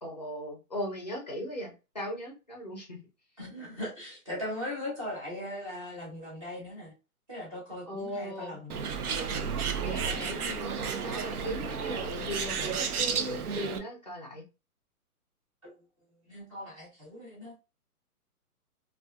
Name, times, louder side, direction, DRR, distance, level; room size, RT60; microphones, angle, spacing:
voice 1, 0.0-3.0 7.9-8.6 9.8-14.4, equal, 30° left, 0.5 m, -38 dB
voice 2, 3.4-6.9 7.3-8.8 15.6-15.7 16.3-17.6, left 1 dB, 20° right, 0.8 m, -39 dB
Bird, 8.7-13.8, right 6 dB, 70° right, 0.6 m, -32 dB
2.4 x 2.3 x 2.2 m
hypercardioid pair, 170°, 46 cm